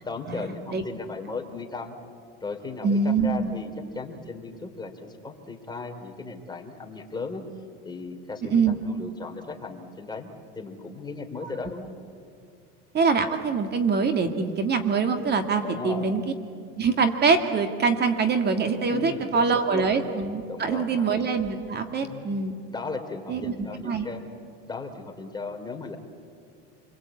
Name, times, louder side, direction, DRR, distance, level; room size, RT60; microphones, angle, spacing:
voice 1, 0.0-2.0 2.4-7.5 7.8-12.0 15.6-16.1 18.9-20.0 20.5-21.1 22.0-22.2 22.7-24.2 24.7-26.0, left 4 dB, 15° left, 3 dB, 3.2 m, -36 dB
voice 2, 2.8-3.5 8.5-8.8 12.9-16.2 16.8-22.6 23.3-23.5 23.8-24.1, right 5 dB, 35° right, 6 dB, 1.9 m, -24 dB
28.0 x 22.0 x 8.5 m, 2.3 s
supercardioid pair, 115°, 30 cm